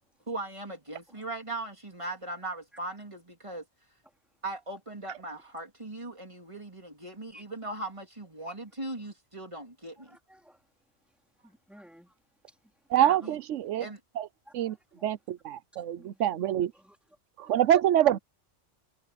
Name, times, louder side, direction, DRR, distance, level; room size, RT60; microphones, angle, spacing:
voice 1, 0.3-3.6 4.4-10.2 13.2-13.4 13.8-14.0, right 2 dB, 25° right, 3.3 m, -39 dB
voice 2, 10.0-10.6 11.4-12.2 12.5-12.6 12.9-13.3 14.5-15.1 16.0-16.2 16.7-17.0 17.4-17.6, equal, ahead, 3.3 m, -53 dB
voice 3, 12.9-13.9 14.2-14.3 14.5-14.8 15.0-16.7 17.4-18.2, right 11 dB, 85° right, 1.0 m, -25 dB
omnidirectional pair, 1.2 m